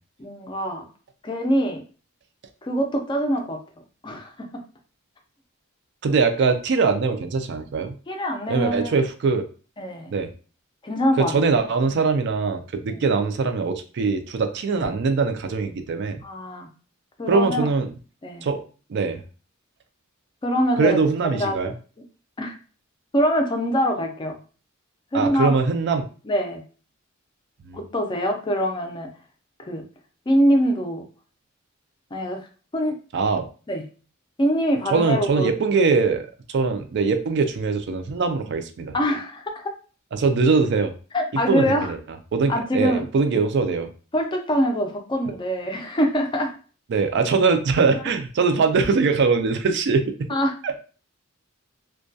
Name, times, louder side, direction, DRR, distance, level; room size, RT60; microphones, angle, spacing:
voice 1, 0.2-0.9 1.2-1.8 2.6-3.6 4.0-4.3 8.1-8.9 9.8-10.1 10.8-11.5 12.9-13.0 16.2-16.7 17.2-17.7 18.2-18.5 20.4-21.0 21.2-21.7 22.4-22.6 23.1-24.4 25.1-25.5 26.2-26.6 27.7-29.1 29.7-29.8 30.3-31.0 32.1-32.5 32.7-32.9 33.7-33.9 34.4-35.6 38.9-39.7 41.1-41.9 42.5-43.1 44.1-46.5 50.3-50.5, equal, 25° left, 3 dB, 0.4 m, -24 dB
voice 2, 6.0-7.9 8.5-9.4 10.1-10.3 11.2-16.2 17.3-17.9 18.4-18.6 18.9-19.2 20.8-21.7 25.1-26.1 27.6-27.8 33.1-33.5 34.9-38.9 40.1-40.9 41.5-42.0 42.3-43.9 46.9-50.3 50.6-50.8, right 4 dB, 55° right, 7 dB, 0.3 m, -22 dB
2.2 x 2.2 x 2.6 m, 0.37 s
head